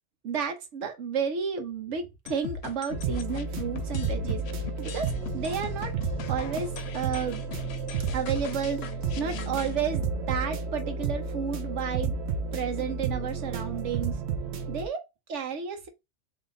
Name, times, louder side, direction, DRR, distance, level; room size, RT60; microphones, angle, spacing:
voice 1, 0.2-4.4 4.8-5.9 6.3-7.4 8.1-8.8 9.2-12.2 12.5-14.2 14.7-15.0 15.3-15.9, right 6 dB, 90° right, 1.2 m, -32 dB
sound 1, 2.3-9.8, left 9 dB, 70° left, 0.8 m, -40 dB
sound 2, 2.9-14.9, right 5 dB, 70° right, 0.9 m, -32 dB
3.6 x 2.5 x 3.8 m
omnidirectional pair, 1.2 m